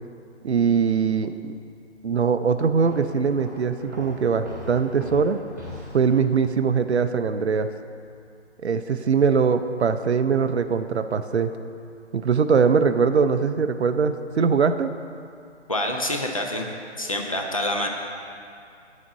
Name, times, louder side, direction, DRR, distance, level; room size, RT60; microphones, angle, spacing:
voice 1, 0.4-1.5 2.0-5.4 5.9-7.7 8.6-11.5 12.1-14.9, right 6 dB, 65° right, 10 dB, 0.5 m, -22 dB
sound 1, 2.9-6.5, equal, 15° right, 0.6 m, -40 dB
voice 2, 15.7-16.7 17.0-17.9, left 1 dB, 30° left, 2 dB, 0.5 m, -26 dB
8.2 x 4.3 x 6.7 m, 2.5 s
figure-of-eight pair, 145°, 35 cm